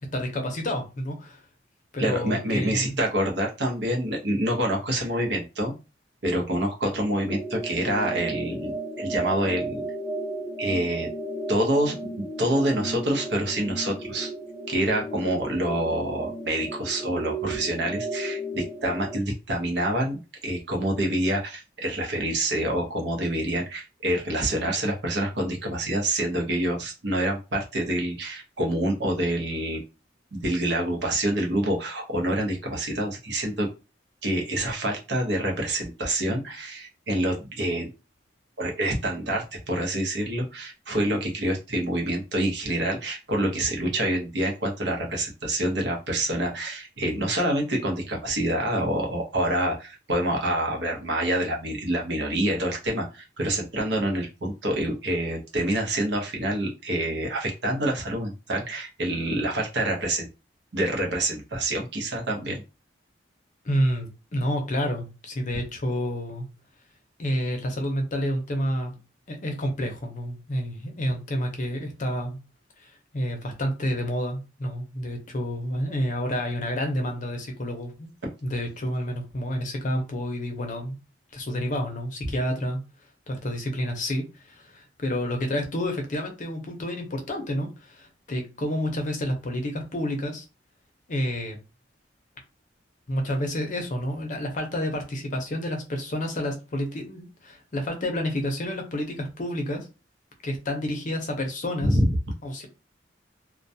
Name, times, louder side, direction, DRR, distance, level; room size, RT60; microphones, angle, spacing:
voice 1, 0.1-1.4 1.9-3.0 63.6-66.5 67.2-68.9 69.3-72.4 72.8-78.1 78.4-81.0 81.3-82.8 83.3-90.4 91.1-91.6 93.1-99.9 100.4-102.0 102.4-102.7, equal, 45° left, 3 dB, 0.6 m, -29 dB
voice 2, 2.0-5.7 6.2-9.8 10.6-11.1 11.5-14.3 14.7-29.8 30.3-33.7 34.2-37.9 38.6-60.3 60.7-62.6 101.8-102.0, right 1 dB, 65° right, 1 dB, 0.7 m, -27 dB
sound 1, 7.3-19.2, right 2 dB, 5° right, 0.8 m, -34 dB
2.2 x 2.2 x 2.6 m, 0.29 s
head